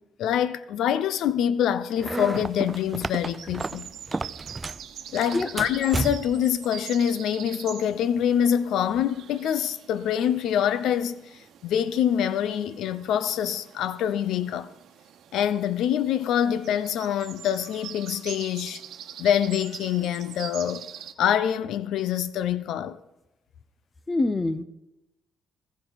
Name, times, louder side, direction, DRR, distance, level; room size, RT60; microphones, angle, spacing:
voice 1, 0.2-3.9 5.1-14.7 15.3-18.8 19.2-20.9 21.2-23.0, left 9 dB, 80° left, 0.7 m, -25 dB
sound 1, 2.0-4.9 5.2-6.5, right 3 dB, 20° right, 0.5 m, -32 dB
sound 2, 2.1-21.1, right 9 dB, 75° right, 1.1 m, -44 dB
voice 2, 24.1-24.6, left 2 dB, 25° left, 0.8 m, -25 dB
15.5 x 14.5 x 4.1 m
cardioid pair, 90°, 0 cm